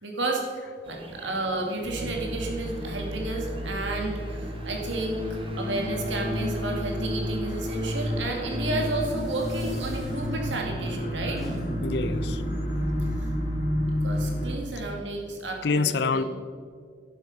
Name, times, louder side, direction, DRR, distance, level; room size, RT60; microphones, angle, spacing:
voice 1, 0.0-5.2 5.6-11.4 13.0-13.3 14.0-16.3, right 2 dB, 75° right, 2.3 m, -32 dB
sound 1, 0.8-9.1, right 1 dB, 30° right, 1.2 m, -45 dB
sound 2, 1.8-14.6, equal, 35° left, 3.5 m, -31 dB
sound 3, 8.6-14.2, equal, ahead, 3.0 m, -42 dB
voice 2, 11.8-12.4 15.6-16.2, left 4 dB, 60° left, 0.5 m, -27 dB
11.5 x 10.5 x 5.5 m
head